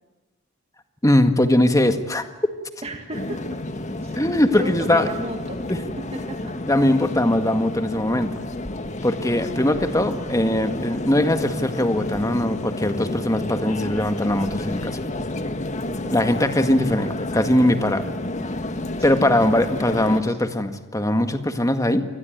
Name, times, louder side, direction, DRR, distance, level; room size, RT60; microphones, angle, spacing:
voice 1, 1.0-2.2 4.2-5.1 5.7-5.8 6.7-8.3 9.0-15.0 16.1-18.1 19.0-22.0, left 1 dB, 15° left, 8 dB, 1.9 m, -20 dB
voice 2, 2.8-3.6 4.0-4.2 4.5-6.5 15.8-16.2 19.0-19.4 19.7-20.4, right 1 dB, 30° right, 4 dB, 2.0 m, -36 dB
sound 1, 3.1-20.2, left 1 dB, 35° left, 1.7 m, -30 dB
29.0 x 21.0 x 9.4 m, 1.1 s
head